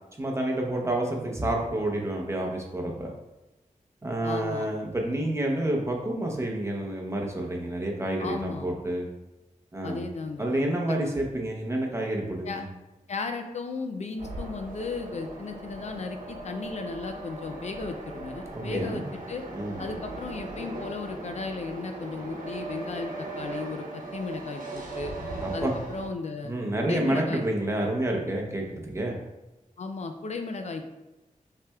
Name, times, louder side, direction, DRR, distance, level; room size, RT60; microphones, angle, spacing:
voice 1, 0.2-3.1 4.0-9.1 9.7-10.1 10.4-12.6 18.5-19.1 19.5-19.8 25.4-25.7 26.4-29.2, right 1 dB, 20° right, 0 dB, 0.8 m, -29 dB
voice 2, 4.2-4.7 8.2-8.7 9.8-10.5 12.4-12.6 13.1-19.4 19.8-25.1 25.5-26.6 26.8-27.4 29.8-30.8, left 4 dB, 55° left, 5 dB, 0.4 m, -35 dB
sound 1, 14.2-26.1, right 2 dB, 75° right, 1.0 m, -38 dB
5.7 x 3.3 x 2.3 m, 1.0 s
wide cardioid pair, 100°, 14 cm